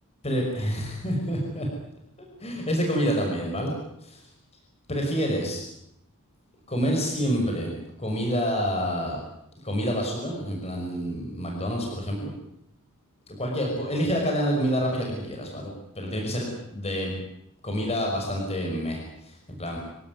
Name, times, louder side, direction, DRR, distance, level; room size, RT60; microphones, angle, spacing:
voice 1, 0.2-1.7 2.2-3.7 4.0-4.2 4.9-5.6 6.7-7.7 8.0-9.2 9.6-12.3 13.3-17.2 17.6-19.8, equal, 30° left, 0 dB, 5.9 m, -28 dB
25.0 x 18.0 x 9.6 m, 0.77 s
head